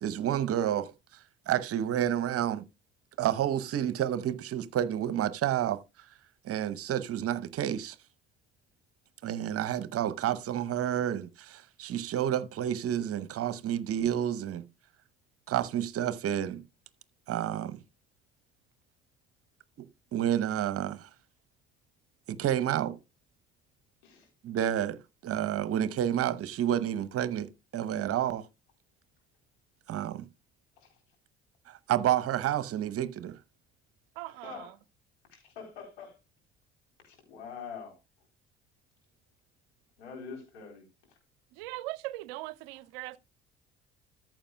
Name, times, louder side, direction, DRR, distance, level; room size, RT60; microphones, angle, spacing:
voice 1, 0.0-0.9 1.5-2.6 3.2-5.8 6.4-8.0 9.2-14.6 15.5-16.6 17.3-17.8 19.8-19.9 20.1-21.1 22.3-23.0 24.4-25.0 25.2-28.5 29.9-30.3 31.7-33.4, right 11 dB, 45° right, 0.8 m, -30 dB
voice 2, 34.2-34.7 41.5-43.2, right 19 dB, 70° right, 0.6 m, -40 dB
voice 3, 35.3-36.2 37.0-37.9 40.0-40.9, left 6 dB, 80° left, 3.8 m, -44 dB
14.0 x 7.5 x 2.3 m
hypercardioid pair, 55°, 32 cm